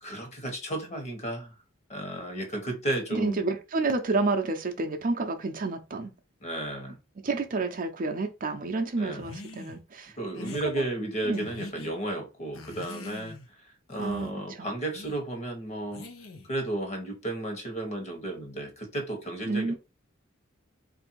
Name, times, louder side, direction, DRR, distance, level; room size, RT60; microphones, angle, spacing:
voice 1, 0.0-1.5 1.9-3.5 6.4-7.0 9.0-9.2 10.2-16.1 16.5-19.7, right 1 dB, 35° left, 1.2 m, -33 dB
voice 2, 3.1-6.1 7.2-10.1 10.8-10.9 11.3-11.5 14.0-14.7 19.5-19.7, right 3 dB, 40° right, 0.5 m, -29 dB
sound 1, 9.2-9.8 10.3-10.7 11.3-11.9 12.5-13.5 13.9-14.3 14.9-15.2 15.9-16.5, left 2 dB, 85° left, 0.8 m, -43 dB
3.3 x 2.6 x 4.4 m
head